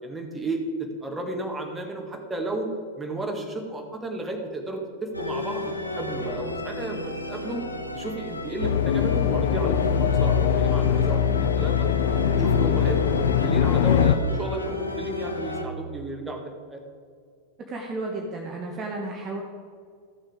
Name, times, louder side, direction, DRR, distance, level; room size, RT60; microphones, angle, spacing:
voice 1, 0.0-2.7 3.0-7.6 7.9-11.9 12.3-16.8, right 2 dB, 10° right, 2 dB, 1.6 m, -33 dB
sound 1, 5.1-15.6, left 1 dB, 85° left, 1.0 m, -33 dB
sound 2, 8.6-14.2, left 8 dB, 60° left, 0.5 m, -22 dB
voice 2, 17.7-19.4, right 2 dB, 25° right, 0 dB, 1.2 m, -33 dB
14.0 x 6.4 x 4.9 m, 2.1 s
figure-of-eight pair, 90°, 0 cm